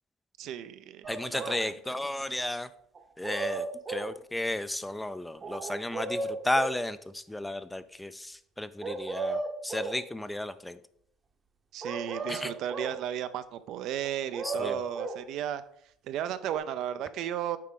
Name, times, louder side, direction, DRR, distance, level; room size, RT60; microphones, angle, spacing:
voice 1, 0.4-2.0 11.7-15.6 16.0-17.6, right 10 dB, 65° right, 12 dB, 0.5 m, -35 dB
sound 1, 1.0-1.7 3.0-4.1 5.4-6.8 8.8-10.0 11.8-13.0 14.0-15.2 16.5-16.6, right 3 dB, 35° right, 0.8 m, -35 dB
voice 2, 1.1-2.7 3.2-9.4 9.6-10.8 12.3-12.5 14.4-14.8, left 1 dB, 5° left, 13 dB, 0.4 m, -33 dB
7.4 x 4.8 x 3.8 m, 0.68 s
supercardioid pair, 100°, 0 cm